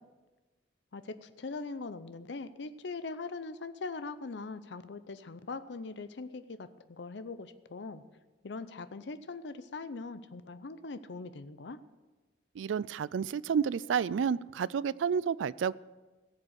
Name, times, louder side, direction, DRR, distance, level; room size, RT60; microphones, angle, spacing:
voice 1, 0.9-8.0 8.4-11.8, left 3 dB, 70° left, 12 dB, 0.6 m, -41 dB
voice 2, 12.6-15.7, right 7 dB, 85° right, 20 dB, 0.3 m, -30 dB
17.0 x 7.4 x 6.4 m, 1.2 s
head